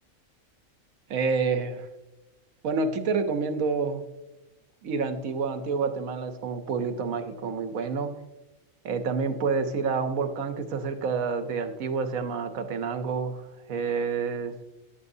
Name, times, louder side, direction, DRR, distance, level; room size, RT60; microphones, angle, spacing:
voice 1, 1.1-1.9 2.6-4.0 4.8-8.1 8.8-13.4 13.7-14.5, right 5 dB, 90° right, 8 dB, 1.3 m, -28 dB
14.0 x 10.0 x 2.7 m, 1.0 s
omnidirectional pair, 1.4 m